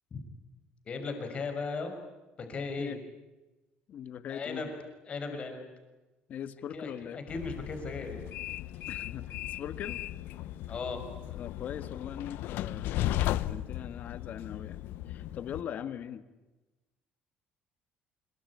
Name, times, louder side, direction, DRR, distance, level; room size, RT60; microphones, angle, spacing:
voice 1, 0.8-1.9 2.4-3.0 4.3-4.7 5.0-5.7 6.7-8.2 10.7-11.1 12.7-12.8, left 4 dB, 35° left, 6 dB, 5.9 m, -37 dB
voice 2, 3.9-4.7 6.3-7.2 8.9-10.0 11.3-13.1 13.4-16.2, left 9 dB, 50° left, 13 dB, 1.6 m, -41 dB
Train, 7.3-15.6, left 14 dB, 70° left, 0.9 m, -36 dB
26.0 x 23.0 x 9.9 m, 1.1 s
cardioid pair, 135°, 3 cm